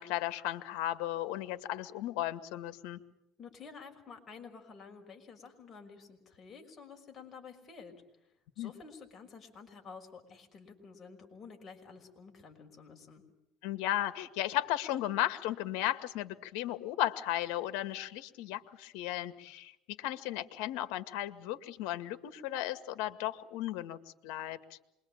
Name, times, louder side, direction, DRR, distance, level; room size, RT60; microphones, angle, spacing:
voice 1, 0.0-3.0 8.6-8.7 13.6-24.8, left 13 dB, 80° left, 11 dB, 1.9 m, -35 dB
voice 2, 3.4-8.0 8.6-13.2, left 5 dB, 30° left, 2 dB, 6.1 m, -51 dB
27.0 x 22.5 x 9.0 m, 0.83 s
cardioid pair, 135°, 0 cm